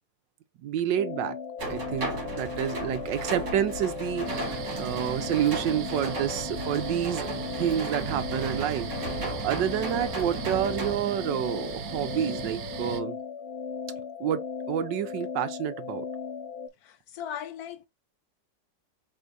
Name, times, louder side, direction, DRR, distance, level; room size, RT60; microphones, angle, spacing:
voice 1, 0.6-1.4 1.7-7.3 7.6-8.9 9.4-13.2 14.2-16.0, right 10 dB, 85° right, 1.4 m, -29 dB
sound 1, 1.0-16.7, left 6 dB, 50° left, 0.7 m, -37 dB
sound 2, 1.6-10.9, right 2 dB, 45° right, 2.0 m, -36 dB
sound 3, 4.3-13.0, right 10 dB, 65° right, 1.0 m, -38 dB
voice 2, 16.8-17.9, left 9 dB, 70° left, 0.9 m, -38 dB
4.7 x 4.3 x 2.5 m
omnidirectional pair, 1.9 m